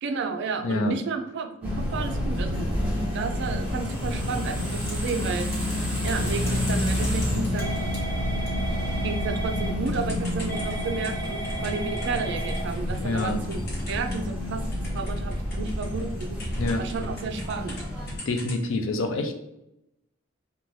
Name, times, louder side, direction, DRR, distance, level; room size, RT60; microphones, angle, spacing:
voice 1, 0.0-2.8 3.1-5.5 6.0-7.9 9.0-13.6 13.9-16.4 16.8-17.8, right 4 dB, 60° right, 6 dB, 0.4 m, -32 dB
voice 2, 0.6-1.0 13.0-13.4 16.6-16.9 18.3-19.3, left 2 dB, 70° left, 5 dB, 0.4 m, -27 dB
sound 1, 1.6-18.2, left 1 dB, 5° right, 0.8 m, -29 dB
Typing / Telephone, 4.7-5.1 5.4-14.4 14.7-17.8 18.1-18.6, right 1 dB, 50° left, 1.0 m, -36 dB
2.5 x 2.2 x 3.2 m, 0.86 s
head